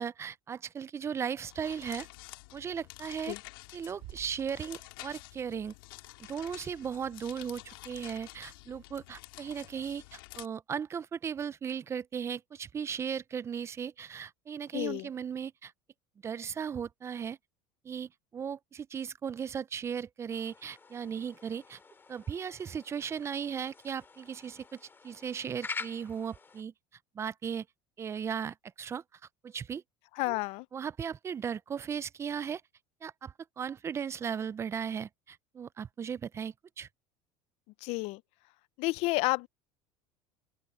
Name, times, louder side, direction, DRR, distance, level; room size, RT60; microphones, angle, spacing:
voice 1, 0.0-2.1 2.5-3.4 3.7-5.7 6.3-15.7 16.2-17.4 17.8-21.8 22.1-26.7 27.1-27.7 28.0-29.0 29.4-29.8 30.3-30.4 30.7-32.6 33.0-36.9, right 7 dB, 25° right, 0.4 m, -37 dB
sound 1, 1.4-10.5, left 22 dB, 85° left, 2.4 m, -49 dB
sound 2, 4.0-5.9, right 17 dB, 60° right, 1.5 m, -52 dB
voice 2, 14.7-15.1 30.2-30.7 37.8-38.2 38.8-39.5, left 23 dB, 65° left, 0.5 m, -30 dB
sound 3, 20.3-26.6, left 4 dB, 20° left, 2.8 m, -46 dB
open air
supercardioid pair, 120°, 11 cm